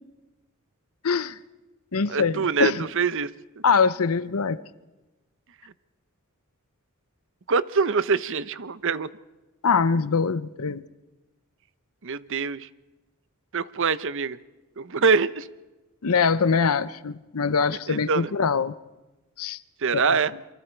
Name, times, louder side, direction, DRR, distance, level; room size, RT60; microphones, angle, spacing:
voice 1, 1.0-1.4 1.9-2.9 3.6-4.6 9.6-10.8 16.0-18.7 19.4-19.6 20.0-20.2, left 5 dB, 75° left, 0.7 m, -23 dB
voice 2, 2.1-3.3 7.5-9.1 12.0-12.7 13.5-14.4 14.8-15.5 17.9-18.3 19.8-20.3, right 5 dB, 60° right, 0.7 m, -24 dB
28.0 x 24.0 x 4.5 m
head